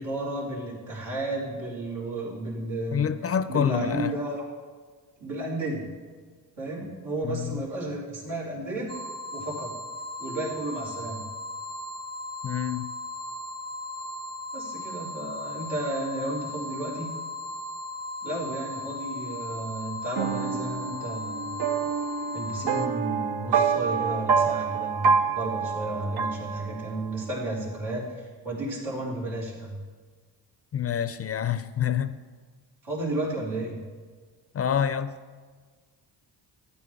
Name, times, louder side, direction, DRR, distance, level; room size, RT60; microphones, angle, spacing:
voice 1, 0.0-3.0 3.5-4.4 5.2-5.9 6.6-8.9 9.3-9.7 10.2-11.2 14.5-17.1 18.2-21.5 22.3-29.8 32.8-33.8, right 1 dB, 80° right, 3.7 m, -33 dB
voice 2, 2.9-4.1 7.2-7.6 12.4-12.9 30.7-32.2 34.5-35.2, left 8 dB, 35° left, 0.5 m, -27 dB
sound 1, 8.9-22.9, left 2 dB, 35° right, 0.9 m, -37 dB
sound 2, 20.1-27.1, right 6 dB, 65° right, 0.7 m, -27 dB
12.5 x 9.3 x 3.6 m
cardioid pair, 70°, 42 cm